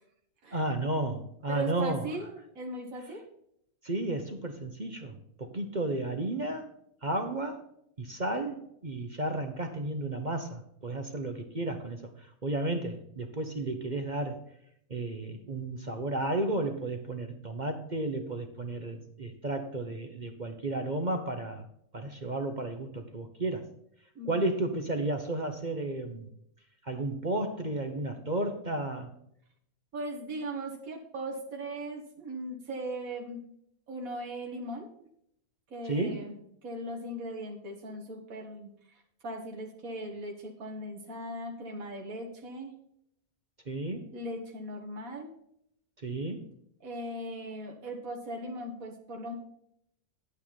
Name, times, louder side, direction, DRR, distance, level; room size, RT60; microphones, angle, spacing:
voice 1, 0.5-2.0 3.8-6.7 7.0-7.6 8.0-14.4 14.9-21.6 21.9-23.7 24.3-26.3 26.8-29.1 35.8-36.2 43.7-44.1 46.0-46.4, right 2 dB, 35° right, 6 dB, 1.1 m, -33 dB
voice 2, 1.5-3.3 24.2-24.4 29.9-33.4 33.9-34.9 35.7-39.0 39.2-42.7 44.1-45.3 46.8-49.4, right 1 dB, 70° right, 2 dB, 2.1 m, -38 dB
9.7 x 9.2 x 4.2 m, 0.72 s
omnidirectional pair, 1.5 m